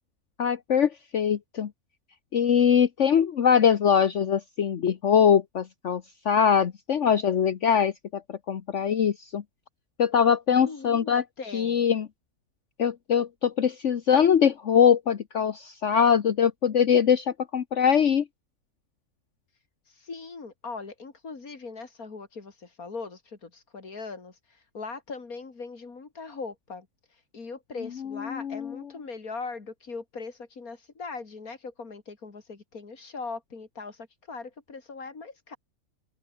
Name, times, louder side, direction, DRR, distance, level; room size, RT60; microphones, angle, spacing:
voice 1, 0.4-1.7 2.3-8.2 8.5-9.4 10.0-11.2 11.5-12.1 12.8-18.2 28.2-28.7, left 7 dB, 55° left, 1.3 m, -22 dB
voice 2, 10.5-11.8 19.9-35.6, left 4 dB, 80° left, 3.4 m, -40 dB
open air
omnidirectional pair, 1.5 m